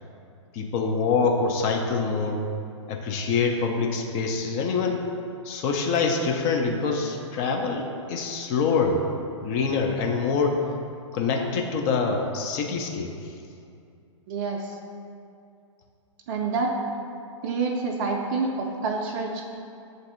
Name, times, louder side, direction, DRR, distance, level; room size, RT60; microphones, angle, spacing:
voice 1, 0.5-2.4 2.9-5.0 5.4-9.0 9.4-10.6 11.1-13.3, left 4 dB, 35° left, 2 dB, 0.4 m, -25 dB
voice 2, 14.3-14.8 16.3-16.8 17.4-19.4, right 4 dB, 40° right, 0 dB, 0.4 m, -27 dB
7.0 x 2.6 x 2.4 m, 2.4 s
hypercardioid pair, 115°, 16 cm